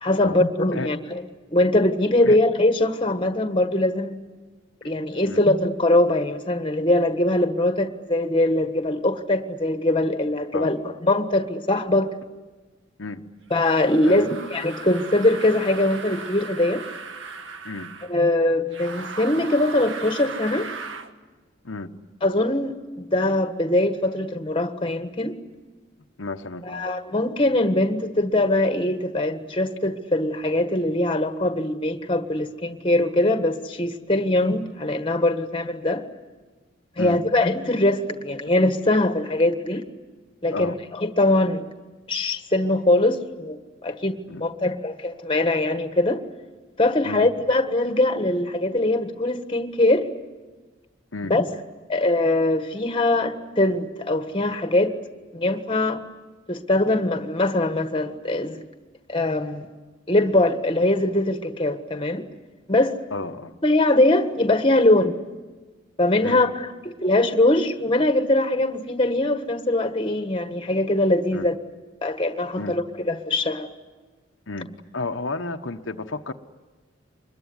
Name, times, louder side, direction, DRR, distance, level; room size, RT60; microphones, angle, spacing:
voice 1, 0.0-1.2 1.5-4.2 4.8-10.8 11.1-12.1 13.5-16.8 18.1-20.7 22.2-25.4 26.6-36.0 37.0-39.8 40.4-41.7 42.1-46.2 46.8-50.1 51.3-51.4 51.9-54.9 55.3-56.0 56.5-58.6 59.1-59.7 60.1-62.2 62.7-63.0 63.6-65.2 66.0-71.5 72.0-73.7, left 1 dB, 25° left, 8 dB, 1.6 m, -22 dB
sound 1, 13.5-18.1 18.7-21.1, right 4 dB, 90° right, 1.8 m, -37 dB
voice 2, 14.0-14.3 17.6-17.9 21.6-21.9 26.2-26.8 37.0-37.2 40.5-40.8 44.3-44.4 47.0-47.3 51.1-51.3 63.1-63.5 66.2-66.4 71.3-71.5 72.6-72.8 74.5-74.7 74.9-76.3, left 3 dB, 90° left, 5 dB, 1.2 m, -31 dB
25.5 x 22.0 x 9.7 m, 1.3 s
head